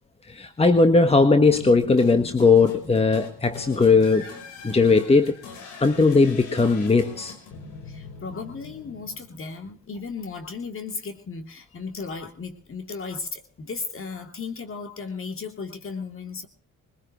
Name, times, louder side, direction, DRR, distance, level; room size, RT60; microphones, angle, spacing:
voice 1, 0.3-4.3 4.6-5.4 5.8-7.3, left 4 dB, 20° left, 8 dB, 1.5 m, -18 dB
sound 1, 1.5-9.7, left 4 dB, 85° left, 4.9 m, -42 dB
voice 2, 7.9-16.5, left 5 dB, 45° left, 7 dB, 3.0 m, -35 dB
21.5 x 21.0 x 3.1 m, 0.42 s
cardioid pair, 90°, 30 cm